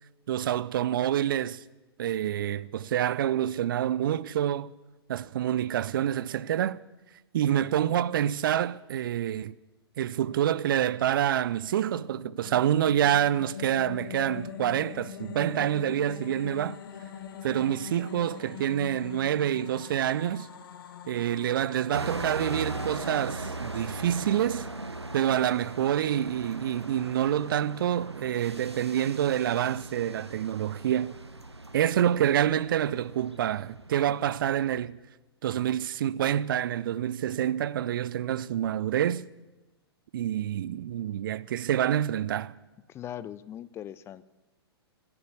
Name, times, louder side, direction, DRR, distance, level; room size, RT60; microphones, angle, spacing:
voice 1, 0.3-1.6 2.0-4.7 5.1-6.8 7.3-9.5 10.0-16.8 17.4-20.5 21.1-24.7 25.1-31.2 31.7-35.0 35.4-39.3 40.1-42.5, right 11 dB, 55° right, 0.5 m, -27 dB
sound 1, 11.6-25.0, left 8 dB, 55° left, 1.5 m, -43 dB
sound 2, 21.9-34.8, right 2 dB, 90° right, 1.1 m, -39 dB
voice 2, 42.9-44.2, left 10 dB, 20° left, 0.4 m, -40 dB
14.5 x 11.0 x 8.3 m
figure-of-eight pair, 110°, 14 cm